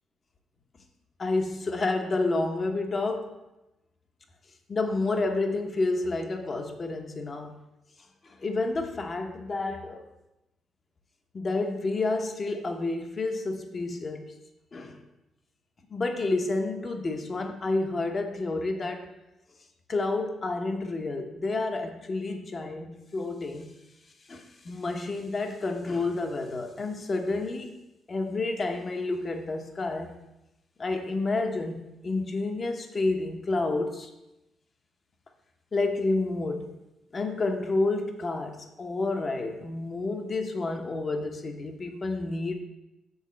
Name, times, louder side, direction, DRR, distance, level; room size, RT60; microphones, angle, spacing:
voice 1, 1.2-3.4 4.7-7.6 8.2-10.0 11.3-14.3 14.7-15.0 15.9-19.1 19.9-23.7 24.3-27.7 28.1-30.1 30.8-34.1 35.7-36.7 37.1-42.5, left 3 dB, 35° left, 4 dB, 1.0 m, -29 dB
8.1 x 3.6 x 6.3 m, 0.94 s
cardioid pair, 90°, 0 cm